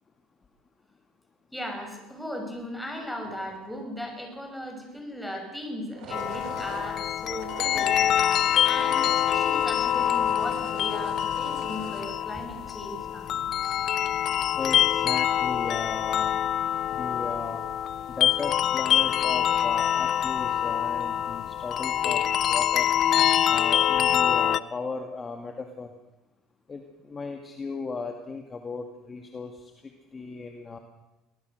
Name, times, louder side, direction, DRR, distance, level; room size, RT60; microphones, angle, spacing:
voice 1, 1.5-8.0 8.6-13.3, equal, 5° left, 3 dB, 6.0 m, -37 dB
sound 1, 3.2-4.2 5.8-13.2, right 8 dB, 65° right, 3.6 m, -44 dB
sound 2, 6.1-24.6, left 10 dB, 45° left, 0.6 m, -25 dB
voice 2, 14.6-16.4 16.9-17.7 18.1-22.9 23.5-25.9 26.7-29.7 30.1-30.8, left 4 dB, 25° left, 4 dB, 2.1 m, -36 dB
23.5 x 18.5 x 6.5 m, 1.0 s
cardioid pair, 125°, 0 cm